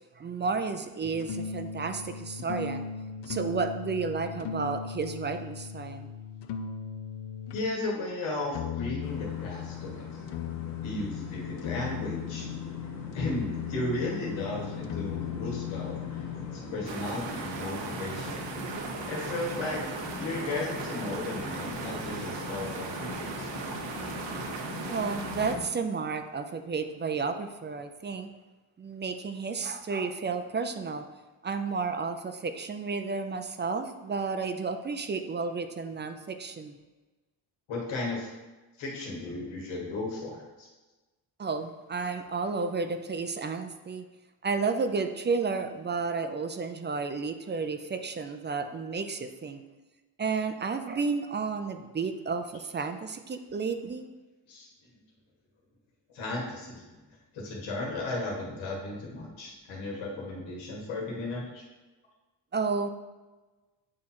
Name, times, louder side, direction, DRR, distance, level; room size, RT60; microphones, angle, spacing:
voice 1, 0.2-2.9 3.3-6.1 24.9-28.3 28.8-31.1 31.4-36.8 41.4-44.0 44.4-49.6 50.2-54.1 62.5-62.9, right 4 dB, 25° right, 8 dB, 0.4 m, -32 dB
sound 1, 1.0-7.7 8.5-16.6, left 8 dB, 65° left, 0.6 m, -37 dB
voice 2, 7.5-10.1 10.8-12.4 13.1-16.2 16.7-18.4 19.1-19.8 20.2-23.5 37.7-38.3 38.8-40.7 54.5-54.9 56.1-57.0 57.3-61.6, left 2 dB, 85° left, -3 dB, 1.8 m, -35 dB
sound 2, 9.0-25.6, left 3 dB, 35° left, 1.2 m, -41 dB
sound 3, 16.9-25.6, right 5 dB, 70° right, 0.9 m, -38 dB
8.6 x 2.9 x 4.3 m, 1.2 s
cardioid pair, 95°, 46 cm